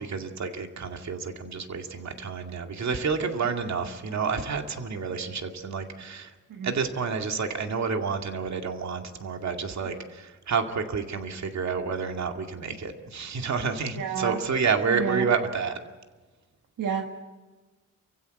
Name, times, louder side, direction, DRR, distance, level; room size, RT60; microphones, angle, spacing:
voice 1, 0.0-6.3 6.6-15.8, right 5 dB, 55° right, 4 dB, 2.3 m, -29 dB
voice 2, 14.0-14.4 14.9-15.3 16.8-17.0, right 7 dB, 75° right, 3 dB, 1.8 m, -29 dB
29.5 x 15.5 x 8.2 m, 1.3 s
wide cardioid pair, 125°, 33 cm